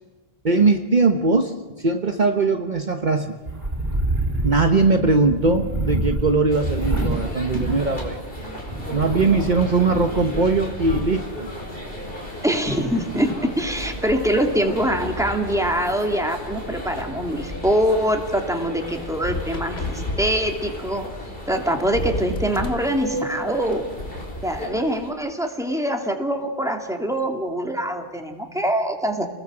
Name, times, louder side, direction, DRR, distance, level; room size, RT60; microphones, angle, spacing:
voice 1, 0.4-3.4 4.4-8.2 8.9-11.5, right 3 dB, 45° right, 5 dB, 1.3 m, -20 dB
sound 1, 3.5-8.3 8.6-11.0, right 1 dB, 70° right, 3.6 m, -27 dB
sound 2, 6.5-25.1, equal, 60° left, 5.2 m, -35 dB
voice 2, 12.4-21.1 21.5-23.9 24.4-29.3, equal, 5° right, 3 dB, 2.7 m, -24 dB
sound 3, 19.2-20.3 21.4-21.5 21.7-22.8 23.7-24.6, left 2 dB, 80° left, 2.4 m, -30 dB
29.5 x 20.0 x 7.8 m, 1.3 s
omnidirectional pair, 1.1 m